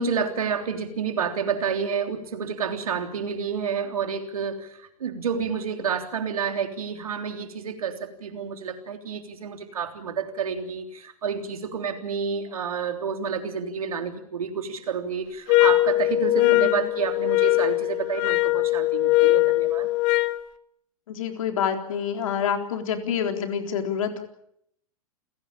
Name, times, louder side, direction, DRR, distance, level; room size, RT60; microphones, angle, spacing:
voice 1, 0.0-19.9, right 6 dB, 75° right, 5 dB, 3.5 m, -29 dB
sound 1, 15.5-20.4, left 19 dB, 45° left, 1.5 m, -21 dB
voice 2, 16.4-16.9 21.1-24.2, left 7 dB, 65° left, 5 dB, 3.9 m, -27 dB
29.0 x 17.0 x 7.4 m, 0.74 s
hypercardioid pair, 105°, 19 cm